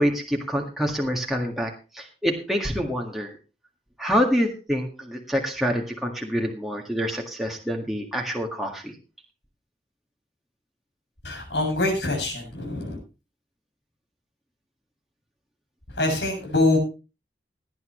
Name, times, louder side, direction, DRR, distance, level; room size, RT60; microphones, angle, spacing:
voice 1, 0.0-3.3 4.0-8.9, equal, ahead, 0 dB, 1.8 m, -26 dB
voice 2, 11.2-13.0 15.9-16.8, left 2 dB, 85° left, 2 dB, 7.2 m, -24 dB
18.0 x 11.0 x 3.2 m, 0.32 s
head